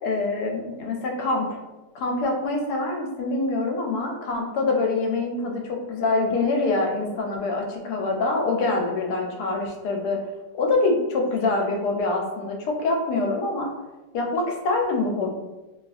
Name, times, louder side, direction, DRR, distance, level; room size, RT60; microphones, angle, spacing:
voice 1, 0.0-1.5 1.9-10.2 10.6-13.7 14.1-15.3, left 3 dB, 75° left, 1 dB, 1.1 m, -25 dB
2.8 x 2.4 x 2.3 m, 1.1 s
omnidirectional pair, 1.8 m